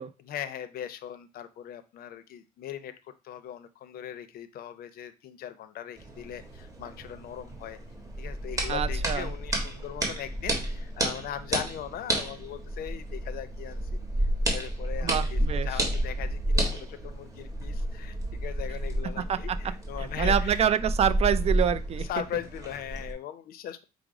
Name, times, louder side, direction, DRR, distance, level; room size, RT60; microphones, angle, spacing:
voice 1, 0.2-2.9 3.2-7.8 8.2-20.6 22.0-23.8, left 10 dB, 65° left, 11 dB, 0.6 m, -39 dB
sound 1, 6.0-23.1, right 1 dB, 20° right, 1.3 m, -31 dB
voice 2, 8.7-9.3 15.0-15.8 19.2-19.7 20.0-22.1, right 9 dB, 40° right, 14 dB, 0.4 m, -27 dB
5.0 x 2.0 x 4.7 m, 0.30 s
cardioid pair, 110°, 17 cm